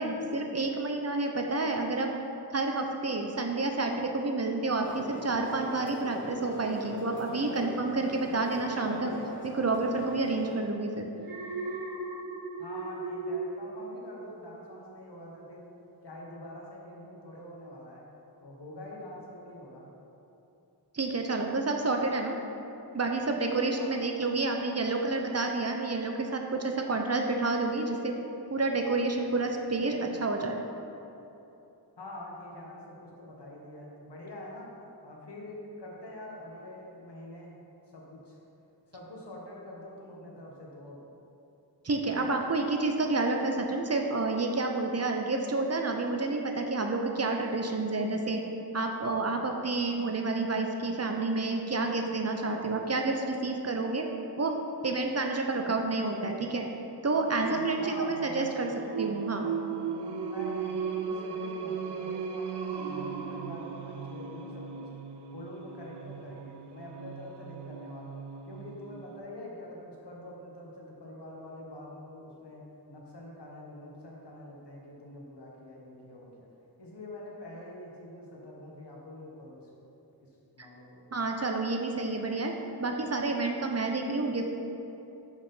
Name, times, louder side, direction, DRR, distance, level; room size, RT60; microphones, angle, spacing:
voice 1, 0.0-2.1 2.5-9.1 9.4-11.1 20.9-22.4 22.9-28.2 28.5-30.6 41.8-48.4 48.7-54.1 54.4-56.7 57.0-58.7 59.0-59.5 81.1-84.5, right 3 dB, 40° right, 3 dB, 0.6 m, -29 dB
sound 1, 4.8-10.5, left 1 dB, 30° left, 0.9 m, -41 dB
Alarm, 11.2-14.5 14.9-15.2, right 3 dB, 55° right, 1.0 m, -37 dB
voice 2, 12.6-15.7 16.0-18.1 18.4-19.9 23.7-23.9 32.0-34.7 35.0-37.5 37.9-38.4 38.9-41.0 57.8-58.7 60.2-64.8 65.3-76.5 76.8-79.7 80.2-80.3 80.6-81.0, left 1 dB, 80° left, -3 dB, 1.3 m, -45 dB
Singing, 57.4-69.2, right 6 dB, 80° right, 0.5 m, -37 dB
5.5 x 4.8 x 5.5 m, 2.9 s
wide cardioid pair, 85°, 40 cm